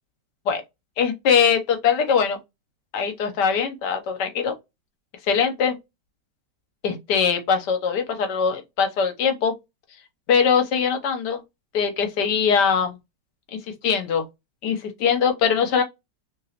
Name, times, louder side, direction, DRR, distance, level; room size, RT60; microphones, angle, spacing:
voice 1, 1.0-2.4 2.9-4.5 5.3-5.8 6.8-9.6 10.3-11.4 11.7-13.0 13.5-13.6 13.8-14.2 14.6-15.8, left 6 dB, 75° left, 1.3 m, -21 dB
3.2 x 2.9 x 2.8 m
omnidirectional pair, 1.9 m